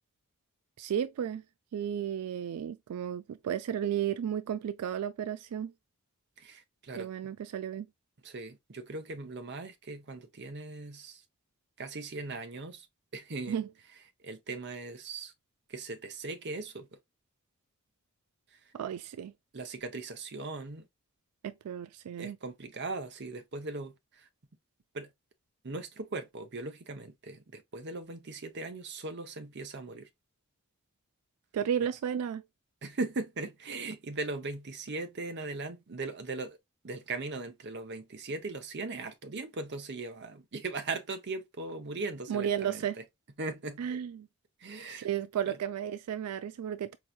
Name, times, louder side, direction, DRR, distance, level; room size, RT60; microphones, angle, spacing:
voice 1, 0.8-1.4 1.7-5.7 6.9-7.9 13.5-13.7 18.7-19.3 21.4-22.4 31.5-32.4 42.3-43.0 43.8-44.3 44.9-47.0, right 9 dB, 90° right, 0.3 m, -33 dB
voice 2, 6.4-7.3 8.2-11.2 11.8-12.9 13.1-13.6 14.2-15.3 15.7-17.0 18.5-18.6 19.5-20.9 22.2-24.3 24.9-25.1 25.6-30.1 32.8-36.6 36.8-43.0 43.4-44.0 44.6-45.1 45.4-45.6, right 3 dB, 50° right, 0.8 m, -39 dB
4.5 x 2.8 x 2.3 m
head